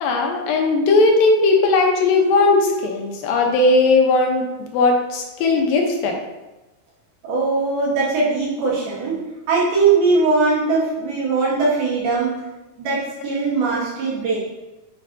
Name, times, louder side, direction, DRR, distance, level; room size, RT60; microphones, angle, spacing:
voice 1, 0.0-6.2, left 3 dB, 75° left, 2 dB, 2.5 m, -17 dB
voice 2, 7.2-9.2 9.5-12.4 12.8-14.4, right 4 dB, 90° right, -7 dB, 3.9 m, -20 dB
7.7 x 5.9 x 2.6 m, 1.1 s
omnidirectional pair, 4.3 m